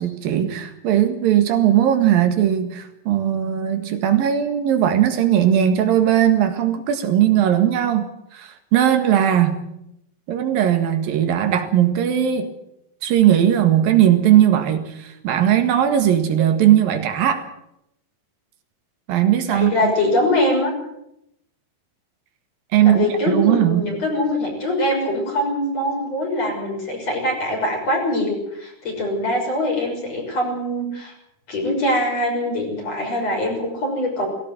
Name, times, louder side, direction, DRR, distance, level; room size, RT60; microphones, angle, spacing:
voice 1, 0.0-9.6 10.3-12.5 13.0-17.5 19.1-19.9 22.7-23.9, right 10 dB, 90° right, 7 dB, 3.6 m, -18 dB
voice 2, 19.5-20.7 22.8-31.1 31.5-34.3, left 1 dB, 45° left, 0 dB, 7.3 m, -23 dB
18.0 x 16.5 x 9.2 m, 0.81 s
omnidirectional pair, 4.0 m